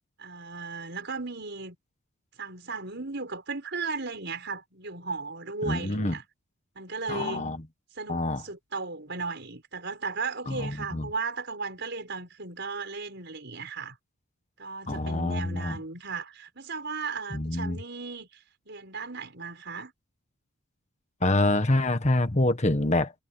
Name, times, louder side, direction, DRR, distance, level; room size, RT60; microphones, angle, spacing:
voice 1, 0.2-1.8 2.4-6.2 6.8-7.5 8.0-14.0 14.6-19.9, right 4 dB, 55° right, 5.7 m, -36 dB
voice 2, 5.6-6.2 7.1-7.6 8.1-8.4 10.5-11.1 14.9-15.8 17.3-17.8 21.2-23.1, left 2 dB, 30° left, 1.4 m, -26 dB
head